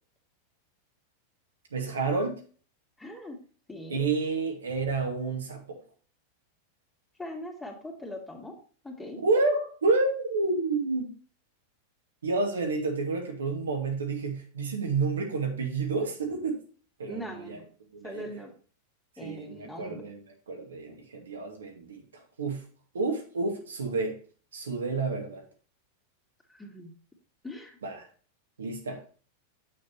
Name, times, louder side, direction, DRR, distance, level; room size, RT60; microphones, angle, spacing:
voice 1, 1.7-2.4 3.9-5.8 9.2-11.1 12.2-16.6 17.0-17.2 17.5-17.6 17.9-18.3 19.2-20.2 20.5-22.6 22.9-24.2 24.5-25.4 27.8-28.1 28.6-29.0, right 3 dB, 80° right, 2 dB, 2.1 m, -29 dB
voice 2, 3.0-3.4 3.7-4.1 7.2-8.5 8.8-9.2 17.0-17.7 18.0-18.5 19.2-20.0 26.5-26.9 27.4-27.8, left 1 dB, 10° left, 1 dB, 2.6 m, -41 dB
7.6 x 6.4 x 3.0 m, 0.41 s
hypercardioid pair, 95°, 0 cm